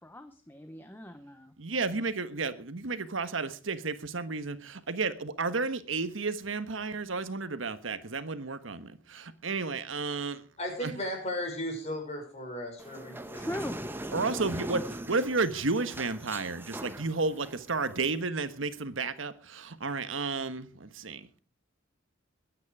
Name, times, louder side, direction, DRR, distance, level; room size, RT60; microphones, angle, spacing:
voice 1, 0.0-1.5 13.1-13.8, left 1 dB, 10° left, 0.9 m, -40 dB
voice 2, 1.6-10.4 10.8-10.9 14.1-21.4, right 3 dB, 90° right, 1.4 m, -32 dB
voice 3, 10.6-13.5, left 1 dB, 35° left, 6.3 m, -36 dB
sound 1, 12.8-18.1, right 1 dB, 10° right, 1.0 m, -40 dB
21.5 x 9.6 x 4.9 m
head